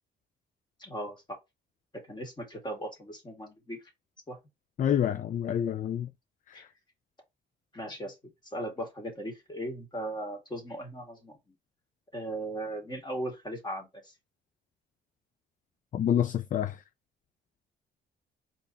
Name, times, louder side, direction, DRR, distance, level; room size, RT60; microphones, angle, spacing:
voice 1, 0.8-1.4 1.9-3.8 4.3-4.4 6.5-6.6 7.7-8.2 8.5-11.4 12.1-14.1, right 1 dB, 20° left, 2.0 m, -38 dB
voice 2, 4.8-6.1 6.5-6.7 15.9-16.8, left 9 dB, 40° left, 0.4 m, -28 dB
4.4 x 2.9 x 3.8 m
cardioid pair, 90°, 20 cm